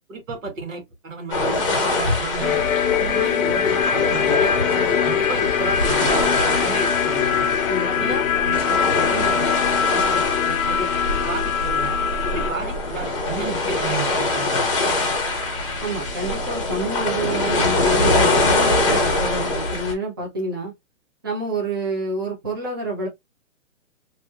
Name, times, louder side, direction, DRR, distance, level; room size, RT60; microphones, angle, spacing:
voice 1, 0.1-2.6 3.0-7.5 7.8-8.8 9.1-10.9 11.2-12.0 12.3-14.6, right 3 dB, 70° right, 1.7 m, -32 dB
sound 1, 1.3-19.9, left 2 dB, 25° left, 0.8 m, -24 dB
sound 2, 2.4-12.5, left 8 dB, 85° left, 0.6 m, -22 dB
voice 2, 7.7-8.1 15.8-20.7 21.2-23.1, right 2 dB, 15° right, 0.6 m, -28 dB
3.4 x 2.7 x 2.4 m
hypercardioid pair, 170°, 40 cm